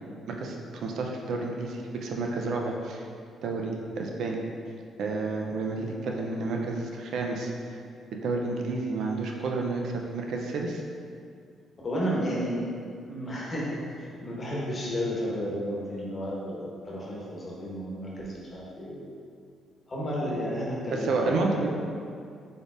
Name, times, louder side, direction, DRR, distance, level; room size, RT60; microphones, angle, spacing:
voice 1, 0.3-3.0 3.4-4.4 5.0-7.8 8.2-10.8 20.9-21.7, right 3 dB, 70° right, 1 dB, 0.4 m, -30 dB
voice 2, 11.8-12.6 13.1-19.0 19.9-21.7, equal, 35° left, -5 dB, 1.0 m, -32 dB
4.1 x 3.4 x 2.4 m, 2.3 s
cardioid pair, 90°, 0 cm